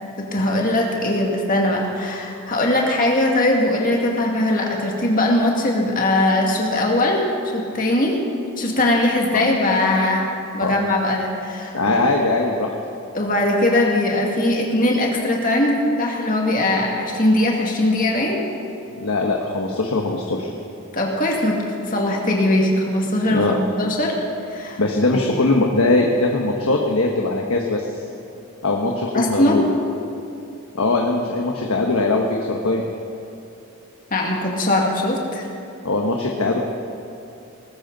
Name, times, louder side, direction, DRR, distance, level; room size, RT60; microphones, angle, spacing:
voice 1, 0.2-7.2 7.5-8.2 8.6-10.3 10.5-12.0 13.1-18.4 20.9-24.1 24.5-24.8 29.1-29.6 34.1-35.4, left 1 dB, 40° left, 0 dB, 2.1 m, -20 dB
voice 2, 11.7-12.7 19.0-20.5 23.3-23.6 24.8-27.9 28.6-29.7 30.7-32.8 35.8-36.6, left 2 dB, 75° left, 1 dB, 1.2 m, -21 dB
19.5 x 14.0 x 4.0 m, 2.7 s
head